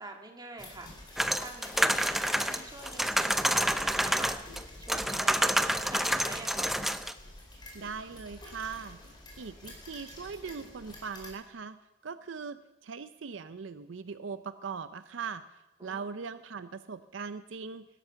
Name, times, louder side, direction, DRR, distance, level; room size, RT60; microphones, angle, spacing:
voice 1, 0.0-4.4 4.8-6.8 15.8-16.1, right 2 dB, 20° right, 2 dB, 1.8 m, -46 dB
sound 1, 0.6-11.3, left 1 dB, 25° left, 4.2 m, -48 dB
sound 2, 1.2-4.6 4.9-7.1, equal, ahead, 0.6 m, -28 dB
voice 2, 7.7-9.0 9.4-11.8 12.0-17.9, right 5 dB, 70° right, 12 dB, 0.5 m, -40 dB
18.5 x 12.5 x 5.8 m, 1.0 s
head